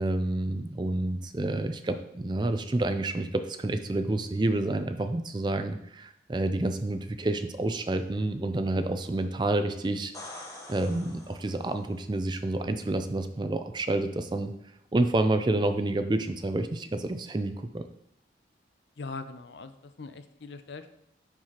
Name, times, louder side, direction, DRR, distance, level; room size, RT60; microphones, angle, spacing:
voice 1, 0.0-10.4 10.7-14.5 14.9-17.8, right 2 dB, 25° right, 9 dB, 0.4 m, -29 dB
sound 1, 9.9-11.9 15.6-15.7, left 1 dB, 20° left, 1.0 m, -45 dB
voice 2, 19.0-20.9, left 4 dB, 75° left, 10 dB, 0.5 m, -41 dB
10.5 x 4.6 x 2.9 m, 0.76 s
head